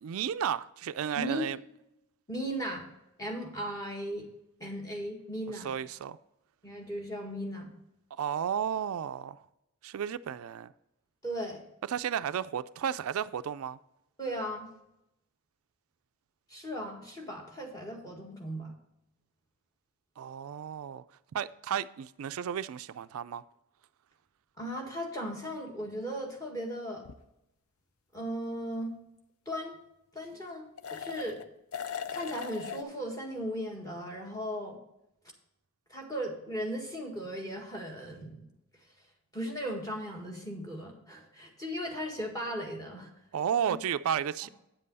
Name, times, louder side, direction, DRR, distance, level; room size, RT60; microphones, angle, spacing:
voice 1, 0.0-1.6 5.6-6.2 8.1-9.4 9.8-10.7 11.9-13.8 20.2-21.0 21.3-23.4 43.3-44.5, right 8 dB, 70° right, 0.3 m, -33 dB
voice 2, 2.3-2.9 3.2-4.3 4.6-5.7 6.6-7.7 11.2-11.6 14.2-14.7 16.5-18.7 24.6-27.0 28.1-28.9 29.4-29.8 30.1-31.4 32.1-34.8 35.9-38.5 39.3-43.1 43.7-43.8, equal, 15° left, 1.7 m, -37 dB
sound 1, 27.0-27.1 30.8-31.5 31.7-32.8, left 7 dB, 75° left, 0.6 m, -38 dB
8.9 x 7.6 x 4.0 m
head